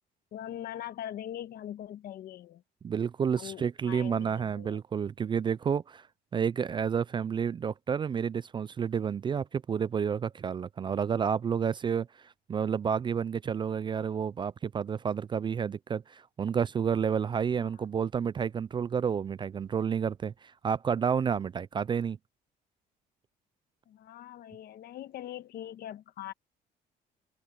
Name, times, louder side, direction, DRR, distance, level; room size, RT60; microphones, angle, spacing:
voice 1, 0.3-2.6 3.4-4.8 17.7-17.8 23.9-26.3, left 11 dB, 65° left, 1.5 m, -42 dB
voice 2, 2.8-6.1 6.3-22.2, right 7 dB, 30° right, 0.3 m, -30 dB
open air
cardioid pair, 110°, 17 cm